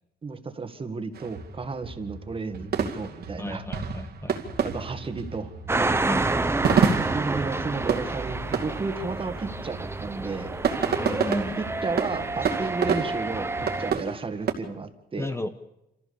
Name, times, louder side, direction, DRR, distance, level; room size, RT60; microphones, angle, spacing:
voice 1, 0.2-3.6 4.6-5.5 7.1-10.5 11.3-15.3, right 4 dB, 30° right, 8 dB, 1.8 m, -33 dB
sound 1, 1.1-14.5, right 6 dB, 70° right, 2.5 m, -30 dB
voice 2, 3.4-4.4 6.0-6.4 10.8-11.6 15.2-15.5, left 1 dB, 15° left, 9 dB, 1.1 m, -33 dB
sound 2, 5.7-13.9, right 2 dB, 15° right, 0.9 m, -29 dB
27.0 x 15.0 x 7.0 m, 0.91 s
cardioid pair, 130°, 17 cm